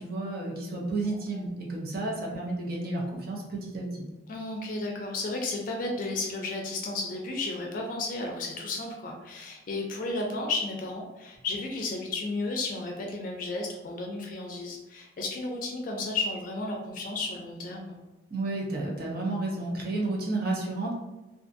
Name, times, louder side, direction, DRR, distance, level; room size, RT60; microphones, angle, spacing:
voice 1, 0.0-4.1 18.3-20.9, right 2 dB, 55° right, -2 dB, 0.6 m, -31 dB
voice 2, 4.3-18.0, left 3 dB, 50° left, 1 dB, 0.4 m, -33 dB
2.5 x 2.4 x 2.5 m, 1.1 s
head